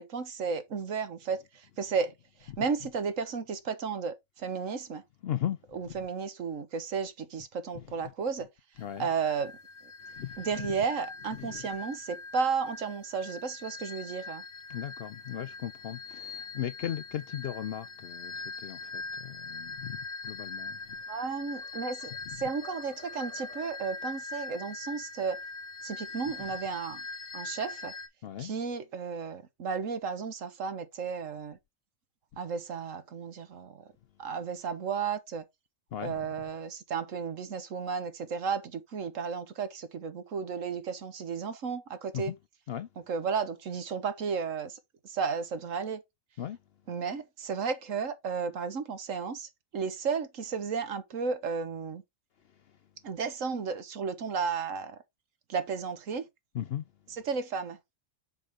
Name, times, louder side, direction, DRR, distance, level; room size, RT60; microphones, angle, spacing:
voice 1, 0.0-1.4 1.8-2.1 2.4-5.0 5.7-8.5 9.0-9.6 10.4-14.4 21.1-25.4 25.8-27.0 27.3-27.9 28.4-31.6 32.4-33.8 34.2-35.4 36.0-42.3 43.1-44.8 45.0-46.0 46.9-52.0 53.0-55.0 55.5-56.3 57.1-57.8, right 5 dB, 70° right, 1.5 m, -33 dB
voice 2, 5.2-5.6 5.9-6.0 7.7-7.8 8.8-9.1 10.1-10.7 11.3-11.7 14.7-21.0 22.3-22.4 28.2-28.5 35.9-36.1 42.1-42.4 42.7-42.9 46.4-46.6 56.5-56.8, left 10 dB, 60° left, 0.7 m, -37 dB
sound 1, 8.8-28.1, left 4 dB, 75° left, 1.6 m, -42 dB
sound 2, 20.9-22.3 22.6-24.0, left 1 dB, 45° right, 2.4 m, -54 dB
6.6 x 4.9 x 3.5 m
omnidirectional pair, 1.4 m